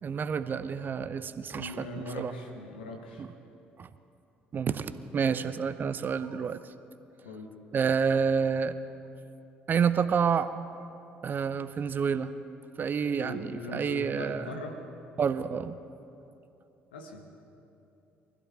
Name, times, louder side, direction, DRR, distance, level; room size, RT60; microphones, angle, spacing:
voice 1, 0.0-1.9 2.2-2.3 3.2-3.3 3.8-3.9 4.5-6.6 7.7-8.8 9.7-10.5 11.2-12.3 12.8-14.6 15.2-15.8, right 6 dB, 35° right, 13 dB, 0.7 m, -29 dB
voice 2, 1.5-3.2 7.2-7.5 13.2-14.8 16.9-17.2, left 1 dB, 75° left, 2 dB, 1.6 m, -40 dB
24.0 x 16.0 x 3.5 m, 2.7 s
figure-of-eight pair, 50°, 5 cm